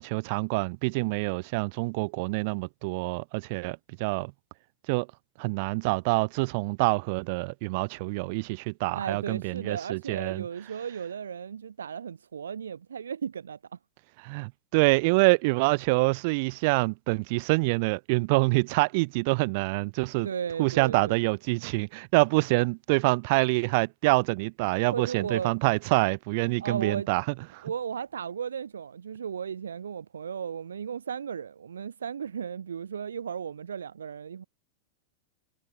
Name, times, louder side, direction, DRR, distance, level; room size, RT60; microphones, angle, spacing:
voice 1, 0.0-4.3 4.9-5.1 5.4-10.4 14.2-20.3 20.6-27.2 27.5-27.7, right 28 dB, 45° right, 1.5 m, -26 dB
voice 2, 8.9-13.6 20.2-21.2 24.9-25.6 26.6-27.1 27.6-34.4, right 7 dB, 70° right, 0.6 m, -35 dB
figure-of-eight pair, 90°, 0 cm